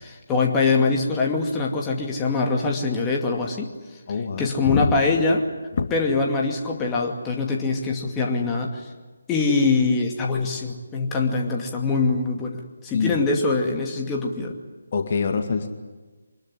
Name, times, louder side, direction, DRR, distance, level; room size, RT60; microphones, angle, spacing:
voice 1, 0.0-3.7 4.4-5.5 5.9-8.9 9.3-14.5, left 3 dB, 15° left, 0 dB, 2.4 m, -23 dB
voice 2, 4.1-5.0 5.8-5.9 12.9-13.2 14.9-15.7, left 5 dB, 40° left, 5 dB, 2.2 m, -24 dB
25.0 x 21.5 x 10.0 m, 1.3 s
figure-of-eight pair, 150°, 0 cm